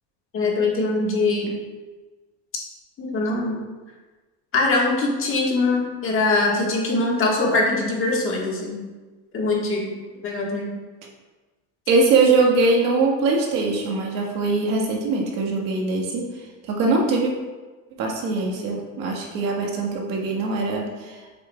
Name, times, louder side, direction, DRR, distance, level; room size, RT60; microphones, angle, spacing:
voice 1, 0.3-1.5 3.0-3.6 4.5-8.8 9.3-9.9 10.2-10.7, left 2 dB, 35° left, -2 dB, 1.5 m, -22 dB
voice 2, 11.9-16.3 16.7-17.3 18.0-21.2, right 3 dB, 60° right, -1 dB, 1.6 m, -22 dB
7.5 x 6.2 x 2.3 m, 1.3 s
cardioid pair, 135°, 37 cm